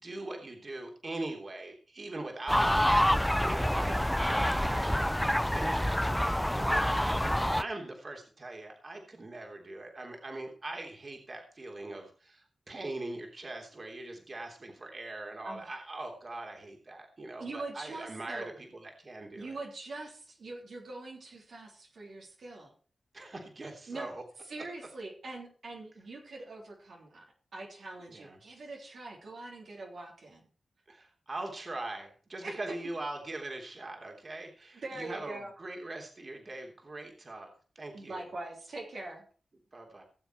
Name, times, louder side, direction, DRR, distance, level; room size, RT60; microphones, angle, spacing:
voice 1, 0.0-3.8 4.2-19.6 23.1-24.2 28.1-28.4 30.9-38.2 39.7-40.0, right 2 dB, 50° right, 2 dB, 3.3 m, -42 dB
sound 1, 2.5-7.6, equal, 5° left, 0.6 m, -27 dB
voice 2, 17.4-18.6 19.4-22.7 23.9-24.1 24.5-30.5 32.4-32.6 34.7-35.5 37.9-39.3, right 2 dB, 75° right, -1 dB, 3.5 m, -43 dB
18.0 x 7.3 x 4.6 m, 0.41 s
cardioid pair, 45°, 0 cm